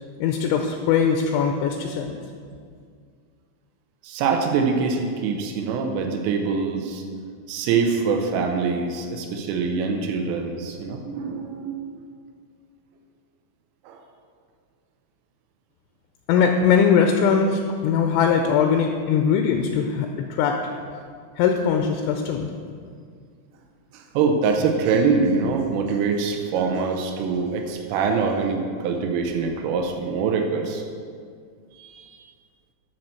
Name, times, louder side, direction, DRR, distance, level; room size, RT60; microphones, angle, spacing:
voice 1, 0.2-2.2 16.3-20.7 21.4-22.5, left 6 dB, 85° left, 4 dB, 2.8 m, -21 dB
voice 2, 4.0-7.0 7.5-12.0 13.9-14.0 23.9-30.8 31.7-32.2, right 5 dB, 85° right, 3 dB, 3.4 m, -24 dB
12.0 x 4.4 x 6.3 m, 2.1 s
omnidirectional pair, 5.7 m